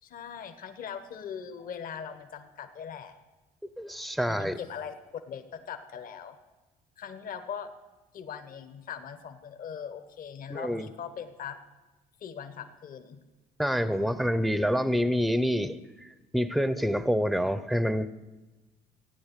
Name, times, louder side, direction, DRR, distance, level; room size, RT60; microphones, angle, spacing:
voice 1, 0.0-3.1 4.3-4.9 5.3-6.4 7.0-7.7 8.1-11.6 12.2-13.2, left 7 dB, 55° left, 1.3 m, -40 dB
voice 2, 3.6-4.6 10.5-10.9 13.6-18.1, equal, ahead, 0.7 m, -27 dB
15.0 x 9.7 x 8.3 m
cardioid pair, 110°, 17 cm